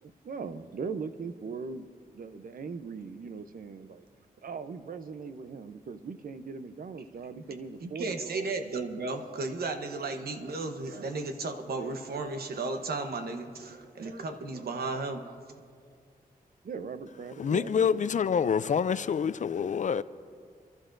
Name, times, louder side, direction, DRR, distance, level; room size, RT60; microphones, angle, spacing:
voice 1, 0.0-1.9 2.1-4.0 4.4-8.5 16.6-18.0, right 5 dB, 70° right, 0.7 m, -40 dB
voice 2, 7.8-15.4, right 3 dB, 90° right, 1.0 m, -34 dB
voice 3, 17.4-20.0, left 7 dB, 55° left, 0.4 m, -27 dB
28.5 x 12.0 x 2.6 m
cardioid pair, 75°, 15 cm